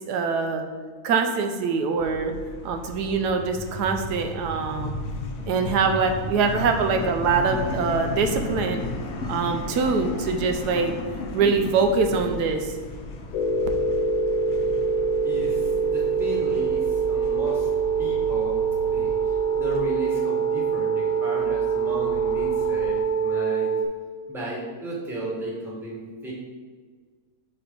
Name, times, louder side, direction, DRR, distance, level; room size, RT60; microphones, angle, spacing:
voice 1, 0.1-0.6 1.0-2.3 2.6-5.0 5.5-8.9 9.3-11.0 11.3-12.8, right 5 dB, 85° right, 5 dB, 1.2 m, -24 dB
sound 1, 2.0-19.8, left 3 dB, 60° left, 0.8 m, -35 dB
sound 2, 13.3-23.9, right 5 dB, 90° left, 1.3 m, -24 dB
voice 2, 15.2-17.7 18.0-18.6 18.9-19.1 19.5-23.7 24.3-26.3, right 1 dB, ahead, -4 dB, 1.2 m, -34 dB
4.4 x 4.2 x 5.3 m, 1.5 s
omnidirectional pair, 1.7 m